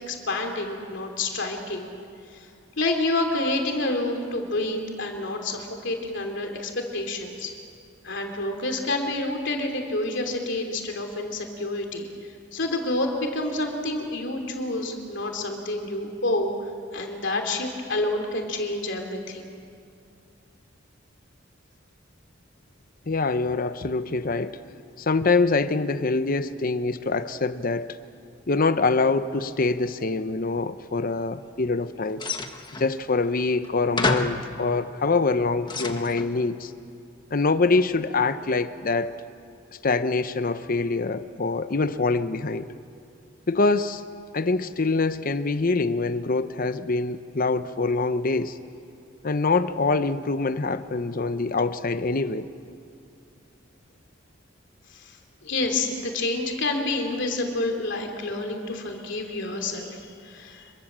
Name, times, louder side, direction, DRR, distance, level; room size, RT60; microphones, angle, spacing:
voice 1, 0.1-1.9 2.3-2.5 2.8-7.5 8.0-12.1 12.5-16.5 16.9-19.5 54.9-55.2 55.4-60.8, left 2 dB, 65° left, 3 dB, 3.2 m, -28 dB
voice 2, 23.1-24.6 25.0-28.0 28.5-32.2 32.8-36.7 37.3-39.1 39.8-42.7 43.5-44.0 44.3-48.6 49.2-52.5, left 3 dB, 50° left, 12 dB, 0.8 m, -24 dB
sound 1, 32.2-32.9 33.6-33.7 34.0-34.5 35.2-36.3, left 3 dB, 25° left, 1.6 m, -28 dB
27.0 x 23.0 x 7.5 m, 2.5 s
head